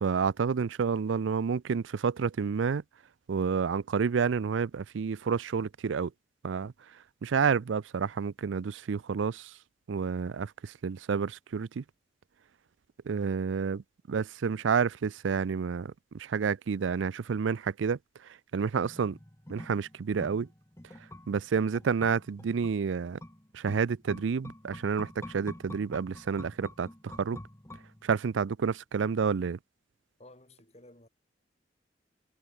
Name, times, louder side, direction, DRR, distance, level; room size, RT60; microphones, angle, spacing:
voice 1, 0.0-2.8 3.3-6.1 6.4-6.7 7.2-9.5 9.9-11.8 13.1-13.8 14.1-18.0 18.5-19.2 19.5-20.5 21.3-23.2 23.5-27.4 28.0-29.6, right 6 dB, 90° right, 0.4 m, -29 dB
sound 1, 18.8-28.4 28.7-28.8, left 1 dB, 15° left, 1.6 m, -47 dB
voice 2, 30.2-31.1, left 1 dB, 35° left, 6.8 m, -54 dB
head